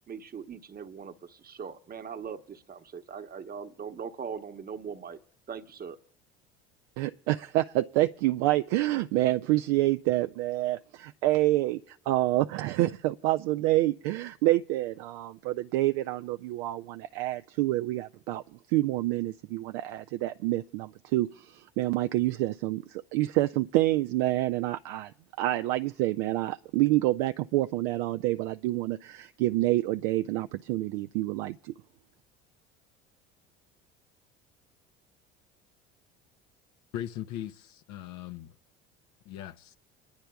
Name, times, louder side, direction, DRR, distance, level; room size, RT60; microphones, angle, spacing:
voice 1, 0.1-5.2 5.5-6.0, right 6 dB, 30° right, 1.0 m, -40 dB
voice 2, 7.0-18.4 18.7-25.1 25.4-31.7, right 16 dB, 75° right, 0.5 m, -27 dB
voice 3, 36.9-38.6 39.3-39.8, left 11 dB, 60° left, 0.6 m, -39 dB
29.5 x 10.5 x 2.3 m
hypercardioid pair, 75°, 30 cm